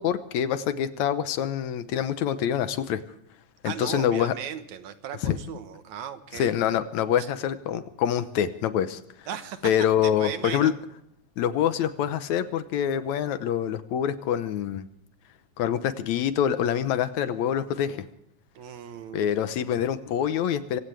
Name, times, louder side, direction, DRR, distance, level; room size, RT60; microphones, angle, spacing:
voice 1, 0.0-3.0 3.6-4.3 5.2-5.4 6.3-9.0 9.6-10.7 11.4-14.9 15.6-18.0 19.1-20.8, left 9 dB, 80° left, 11 dB, 2.3 m, -25 dB
voice 2, 3.7-6.5 7.2-7.3 9.3-9.7 10.0-10.7 18.6-19.3, right 9 dB, 80° right, 9 dB, 2.5 m, -37 dB
25.5 x 16.5 x 3.4 m, 0.74 s
omnidirectional pair, 3.3 m